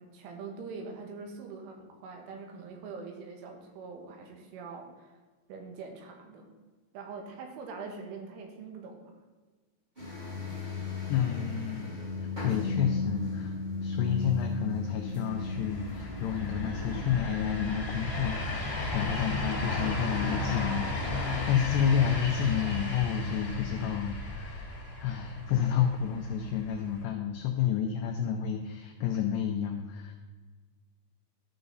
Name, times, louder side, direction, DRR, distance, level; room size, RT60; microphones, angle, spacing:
voice 1, 0.0-5.2 5.5-6.5 6.9-9.2, right 4 dB, 75° right, 3 dB, 3.7 m, -43 dB
sound 1, 9.9-17.2, left 4 dB, 15° right, 1.9 m, -35 dB
voice 2, 11.1-24.7 25.0-30.2, left 8 dB, 90° left, 4 dB, 2.4 m, -30 dB
Train passing at high speed, 15.1-27.0, left 2 dB, 25° left, 1.2 m, -35 dB
13.5 x 6.8 x 4.0 m, 1.4 s
omnidirectional pair, 5.9 m